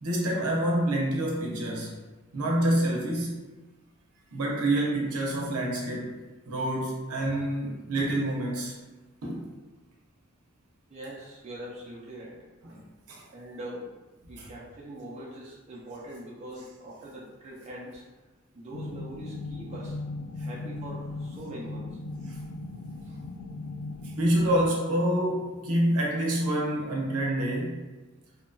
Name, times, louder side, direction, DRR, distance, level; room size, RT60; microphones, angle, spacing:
voice 1, 0.0-2.0 2.3-3.4 4.3-8.8 9.2-9.4 12.6-12.8 13.1-13.2 14.4-14.5 22.3-22.4 24.2-27.8, right 1 dB, 80° right, -2 dB, 0.6 m, -27 dB
voice 2, 10.9-12.4 13.3-14.0 14.3-18.0 18.5-20.0 20.4-22.0 23.0-23.2, right 1 dB, 30° right, -5 dB, 0.4 m, -42 dB
sound 1, 18.7-24.7, left 2 dB, 70° left, 0.3 m, -38 dB
2.7 x 2.2 x 2.5 m, 1.2 s
head